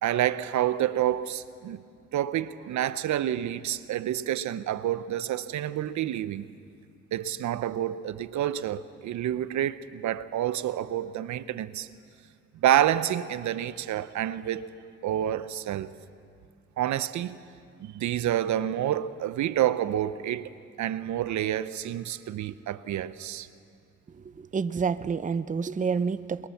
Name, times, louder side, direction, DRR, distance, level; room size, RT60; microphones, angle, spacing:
voice 1, 0.0-1.8 2.1-6.4 7.1-11.9 12.6-14.7 15.0-15.9 16.8-17.4 17.8-23.5, right 11 dB, 70° right, 0.8 m, -28 dB
voice 2, 24.2-26.5, right 5 dB, 25° right, 0.7 m, -29 dB
26.5 x 22.0 x 7.2 m
cardioid pair, 90°, 30 cm